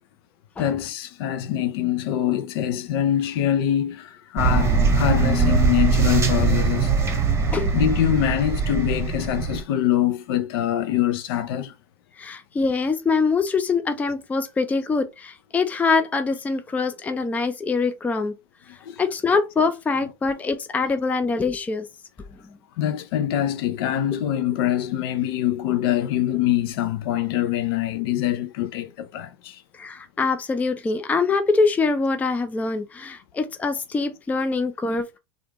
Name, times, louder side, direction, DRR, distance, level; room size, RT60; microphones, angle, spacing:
voice 1, 0.6-7.0 7.7-11.7 18.8-19.0 22.8-29.6, left 11 dB, 60° left, 0.5 m, -24 dB
sound 1, 4.4-9.6, right 4 dB, 20° right, 0.9 m, -21 dB
voice 2, 12.2-18.3 19.0-21.9 29.7-35.2, left 4 dB, 10° left, 0.4 m, -24 dB
3.3 x 2.4 x 2.9 m
hypercardioid pair, 100°, 14 cm